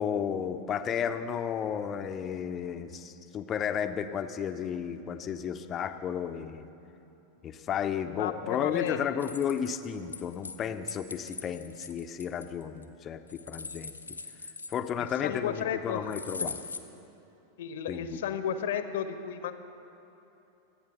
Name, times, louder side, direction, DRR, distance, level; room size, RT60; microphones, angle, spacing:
voice 1, 0.0-6.7 7.4-13.9 14.7-16.6 17.9-18.2, left 8 dB, 30° left, 9 dB, 0.7 m, -33 dB
voice 2, 8.2-9.1 15.0-16.1 17.6-19.5, left 9 dB, 55° left, 10 dB, 0.9 m, -33 dB
sound 1, 9.2-10.6 10.9-12.8 13.3-15.1 16.1-16.8, left 4 dB, 80° left, 0.8 m, -40 dB
25.0 x 8.9 x 5.6 m, 3.0 s
figure-of-eight pair, 90°, 0 cm